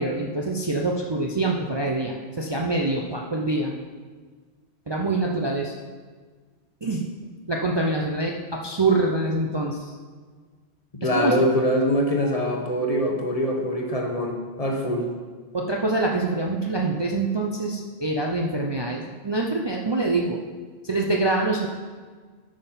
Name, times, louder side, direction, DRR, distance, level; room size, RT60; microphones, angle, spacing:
voice 1, 0.0-3.7 4.9-5.7 6.8-7.0 7.5-9.9 11.0-11.4 15.5-20.4 20.8-21.7, right 2 dB, 30° right, 0 dB, 0.6 m, -25 dB
voice 2, 10.9-15.1, equal, 35° left, 1 dB, 1.1 m, -23 dB
8.5 x 5.5 x 5.7 m, 1.5 s
omnidirectional pair, 1.1 m